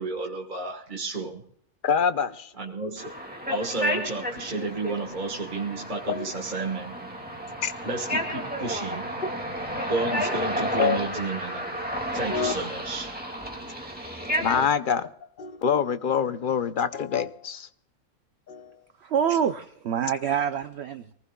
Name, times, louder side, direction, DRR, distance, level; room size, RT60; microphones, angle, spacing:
voice 1, 0.0-1.4 2.6-7.0 7.8-9.1 9.8-11.8 12.1-13.1, right 3 dB, 35° right, 1.6 m, -32 dB
voice 2, 1.8-2.5 6.1-6.2 7.6-7.7 10.8-11.1 12.3-12.5 14.4-17.7 18.5-18.8, left 7 dB, 45° left, 0.8 m, -26 dB
sound 1, 3.0-14.7, equal, 5° right, 2.2 m, -32 dB
voice 3, 19.0-21.1, right 8 dB, 60° right, 0.9 m, -26 dB
23.5 x 19.0 x 2.3 m
omnidirectional pair, 1.4 m